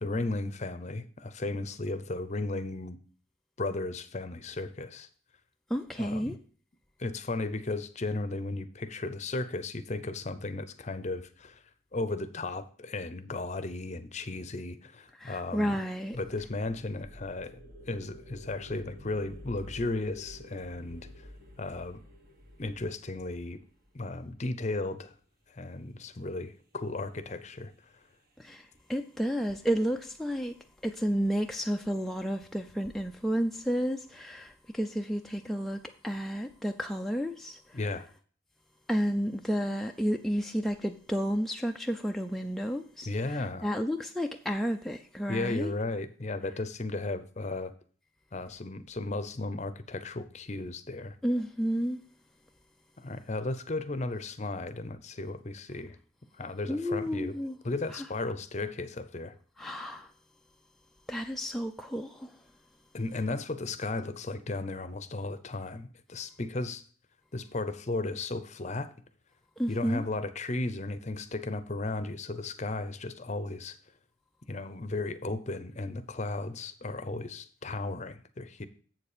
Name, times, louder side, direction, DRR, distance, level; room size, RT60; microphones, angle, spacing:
voice 1, 0.0-3.0 3.6-5.1 6.0-6.4 7.0-11.6 11.9-15.8 16.1-17.6 17.9-21.1 21.6-22.0 22.6-23.6 23.9-25.1 25.5-27.7 37.7-38.1 43.1-43.7 45.3-47.7 48.3-51.2 53.0-56.0 56.4-57.4 57.6-59.3 62.9-66.8 67.3-68.9 69.7-73.8 74.5-78.7, left 2 dB, 35° left, 0.7 m, -35 dB
voice 2, 5.7-6.4 15.2-16.2 28.4-30.5 30.8-37.8 38.9-45.7 51.2-52.0 56.7-57.6 59.6-60.1 61.1-62.3 69.6-70.0, equal, ahead, 0.4 m, -31 dB
sound 1, 16.1-24.3, left 1 dB, 50° right, 1.7 m, -50 dB
7.9 x 7.0 x 5.0 m
head